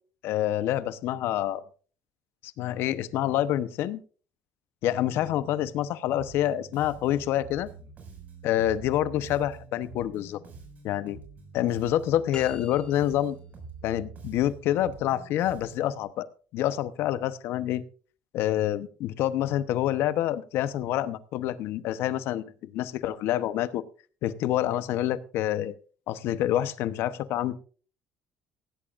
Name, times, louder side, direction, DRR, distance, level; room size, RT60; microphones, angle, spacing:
voice 1, 0.2-1.6 2.6-4.0 4.8-7.7 8.4-10.4 10.8-11.2 11.5-13.4 13.8-16.3 16.5-17.8 18.3-23.8 24.2-25.8 26.1-27.6, left 12 dB, 70° left, 13 dB, 0.9 m, -27 dB
Bass guitar, 6.1-16.0, right 4 dB, 40° right, 5.9 m, -46 dB
sound 1, 12.3-13.4, left 4 dB, 20° left, 2.3 m, -43 dB
16.5 x 16.0 x 2.5 m, 0.39 s
cardioid pair, 135°, 4 cm